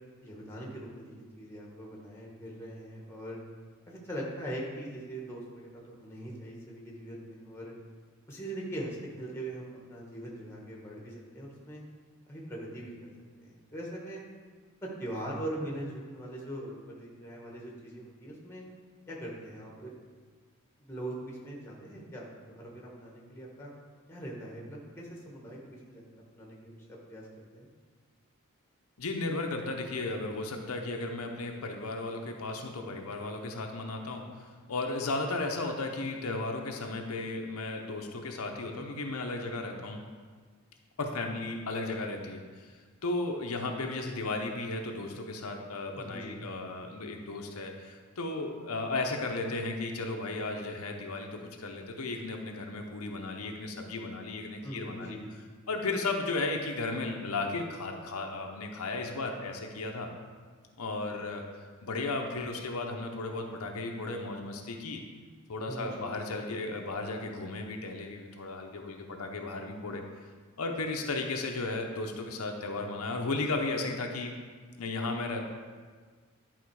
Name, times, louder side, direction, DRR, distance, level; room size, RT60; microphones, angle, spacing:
voice 1, 0.2-3.4 3.9-7.7 8.3-11.8 12.3-12.9 13.4-14.2 14.8-18.6 19.1-19.9 20.8-23.7 24.1-26.0 26.3-27.2 27.5-27.7 45.9-46.4 54.6-55.3 65.7-66.1, right 1 dB, 10° left, -2 dB, 1.4 m, -41 dB
voice 2, 29.0-40.0 41.0-55.2 55.7-60.1 60.8-61.4 61.8-65.0 65.5-70.0 70.6-74.3 74.8-75.4, left 2 dB, 80° left, 2 dB, 0.8 m, -35 dB
11.0 x 3.9 x 4.7 m, 1.5 s
head